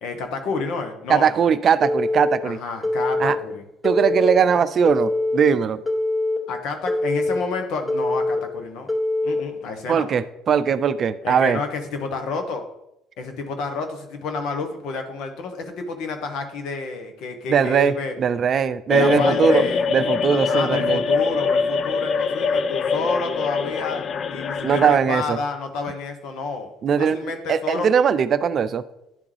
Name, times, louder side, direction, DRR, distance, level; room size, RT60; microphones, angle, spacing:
voice 1, 0.0-1.3 2.4-3.6 6.5-9.0 9.2-10.1 11.2-12.6 13.2-18.1 18.9-19.8 20.3-26.7 27.0-27.9, left 4 dB, 70° left, 5 dB, 1.1 m, -29 dB
voice 2, 1.1-2.6 3.2-3.4 3.8-5.8 9.9-11.6 17.5-19.6 19.9-21.0 24.6-25.4 26.8-28.9, right 7 dB, 50° right, 14 dB, 0.4 m, -20 dB
Telephone, 1.8-2.3 2.8-3.3 3.8-4.4 4.8-5.4 5.9-6.4 6.9-7.4 7.9-8.4 8.9-9.4, left 2 dB, 15° left, 1.8 m, -23 dB
sound 1, 18.9-24.9, left 5 dB, 50° left, 0.4 m, -23 dB
10.5 x 3.5 x 3.3 m, 0.85 s
hypercardioid pair, 65°, 0 cm